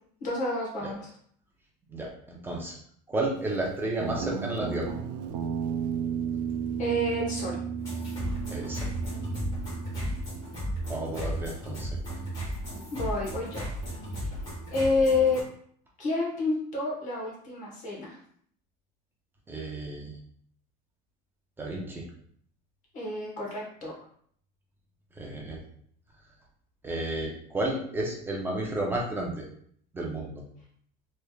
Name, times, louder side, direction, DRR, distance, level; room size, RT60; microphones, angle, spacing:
voice 1, 0.2-1.0 6.8-7.6 12.9-13.7 14.2-14.3 14.7-15.4 16.0-18.2 22.9-23.9, left 2 dB, 35° left, -4 dB, 1.3 m, -28 dB
voice 2, 1.9-2.8 3.1-4.9 8.5-8.9 10.9-11.9 19.5-20.2 21.6-22.0 25.2-25.6 26.8-29.4 29.9-30.4, right 2 dB, 10° right, -2 dB, 0.4 m, -32 dB
Guitar, 4.0-10.6, right 6 dB, 80° right, 0.5 m, -33 dB
sound 1, 7.8-15.4, equal, 20° left, 1.5 m, -35 dB
3.3 x 3.2 x 2.3 m, 0.62 s
cardioid pair, 170°, 21 cm